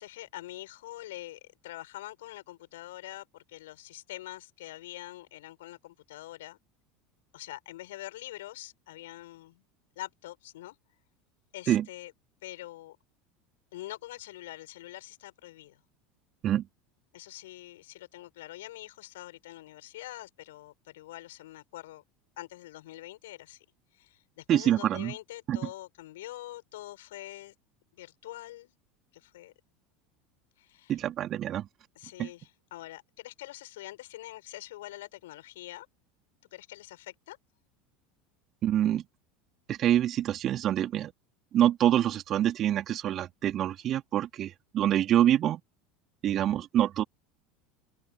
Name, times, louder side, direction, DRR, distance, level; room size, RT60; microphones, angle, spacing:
voice 1, 0.0-6.6 7.3-9.6 9.9-10.7 11.5-12.1 12.4-13.0 13.7-15.8 17.1-22.0 22.4-23.6 23.9-27.5 27.9-28.7 29.1-29.5 30.6-31.0 31.9-35.9 36.5-37.4, left 16 dB, 70° left, 6.8 m, -44 dB
voice 2, 24.5-25.1 25.5-25.6 30.9-31.7 32.2-32.3 38.6-39.0 39.7-41.1 41.5-45.6 46.2-47.0, right 11 dB, 40° right, 3.0 m, -26 dB
open air
figure-of-eight pair, 75°, 0 cm